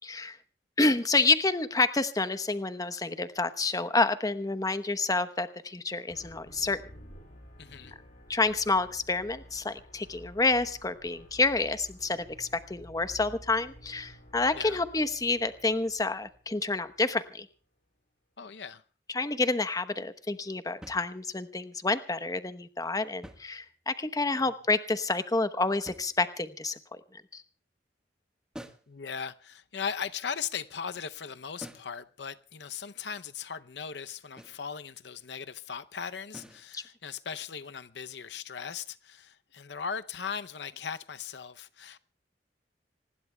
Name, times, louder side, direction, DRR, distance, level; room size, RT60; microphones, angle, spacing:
voice 1, 0.0-0.4 0.8-6.8 8.3-17.5 19.1-27.4 36.7-36.8, left 3 dB, 20° left, 1.0 m, -29 dB
sound 1, 6.1-17.3, equal, 50° left, 5.8 m, -52 dB
voice 2, 7.6-7.9 14.6-14.8 18.4-18.8 28.9-42.0, left 6 dB, 75° left, 0.7 m, -38 dB
sound 2, 20.8-21.6 23.0-24.1 25.9-26.6 28.5-29.0 31.6-32.0 34.4-34.7 36.3-36.7, equal, 5° right, 1.4 m, -49 dB
26.5 x 20.0 x 2.3 m
head